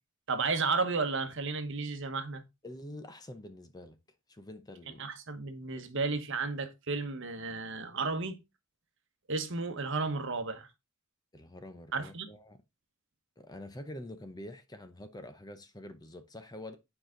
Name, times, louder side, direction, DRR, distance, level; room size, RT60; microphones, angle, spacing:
voice 1, 0.3-2.4 5.0-8.4 9.3-10.7 11.9-12.3, right 4 dB, 60° right, 1.1 m, -33 dB
voice 2, 2.6-4.0 4.3-5.1 11.3-12.6 13.4-16.8, left 1 dB, 20° left, 0.7 m, -46 dB
9.2 x 4.9 x 3.7 m
head